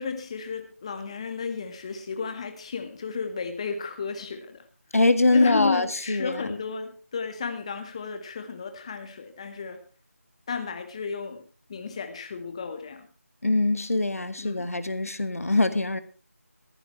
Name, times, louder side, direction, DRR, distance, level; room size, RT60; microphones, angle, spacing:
voice 1, 0.0-4.6 5.3-9.8 10.5-11.4 11.7-13.1 14.4-14.7, left 5 dB, 25° left, 8 dB, 1.1 m, -33 dB
voice 2, 4.9-6.6 13.4-16.0, left 2 dB, 75° left, 11 dB, 1.8 m, -23 dB
15.5 x 14.0 x 3.2 m, 0.35 s
figure-of-eight pair, 165°, 8 cm